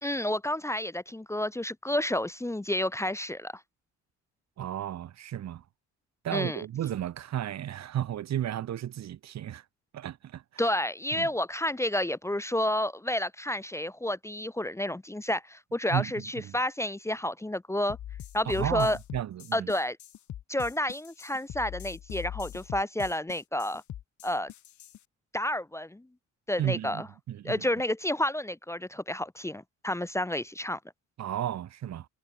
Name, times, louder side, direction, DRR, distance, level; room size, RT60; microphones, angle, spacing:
voice 1, 0.0-3.5 6.3-6.6 10.6-18.0 18.3-19.0 19.5-20.0 20.5-23.8 24.2-24.5 25.3-26.1 26.5-27.1 27.4-30.8, left 1 dB, 10° left, 0.9 m, -30 dB
voice 2, 4.6-5.6 6.2-9.6 9.9-10.6 11.1-11.3 15.9-16.6 18.4-19.7 26.6-27.6 31.2-32.1, right 11 dB, 65° right, 1.4 m, -33 dB
sound 1, 17.9-25.0, left 11 dB, 70° left, 6.4 m, -42 dB
cardioid pair, 90°, 30 cm